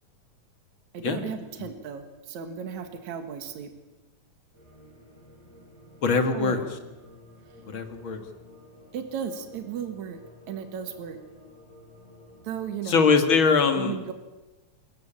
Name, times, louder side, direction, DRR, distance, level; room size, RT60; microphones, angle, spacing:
voice 1, 0.9-3.7 6.3-6.8 8.9-10.2 10.5-11.2 12.4-13.1 13.7-14.1, right 8 dB, 75° right, 7 dB, 3.0 m, -35 dB
sound 1, 4.5-13.4, left 1 dB, 30° right, 8.4 m, -52 dB
voice 2, 6.0-6.6 7.7-8.2 12.9-14.0, left 5 dB, 45° left, 7 dB, 2.4 m, -22 dB
28.0 x 14.0 x 8.9 m, 1.1 s
omnidirectional pair, 3.4 m